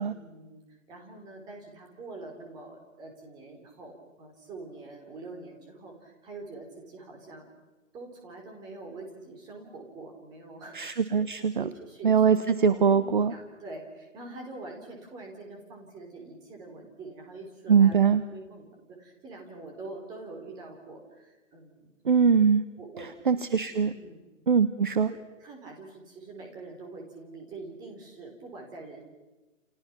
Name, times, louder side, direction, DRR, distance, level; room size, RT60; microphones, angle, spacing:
voice 1, 0.1-7.5 7.9-10.8 11.6-12.4 12.7-18.0 18.3-21.9 22.8-23.4 23.9-24.3 25.1-29.0, right 3 dB, 10° right, 1 dB, 3.8 m, -45 dB
voice 2, 10.7-11.6 12.0-13.3 17.7-18.2 22.0-22.6 23.3-23.9 24.5-25.1, right 6 dB, 35° right, 13 dB, 1.0 m, -22 dB
30.0 x 30.0 x 6.1 m, 1.2 s
hypercardioid pair, 170°, 40 cm